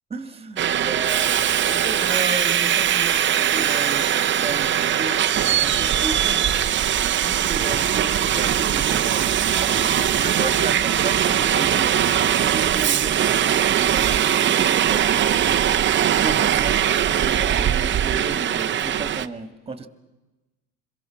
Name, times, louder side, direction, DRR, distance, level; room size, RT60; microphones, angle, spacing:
voice 1, 0.1-1.4 1.7-6.6 7.2-12.1 12.4-15.4 16.2-16.8 17.1-19.9, right 3 dB, 15° right, 11 dB, 2.0 m, -34 dB
Subway metro underground, 0.6-19.3, right 10 dB, 35° right, 0.8 m, -21 dB
sound 1, 9.5-13.0, left 3 dB, 75° left, 7.5 m, -37 dB
27.0 x 22.5 x 5.9 m, 1.1 s
cardioid pair, 115°, 33 cm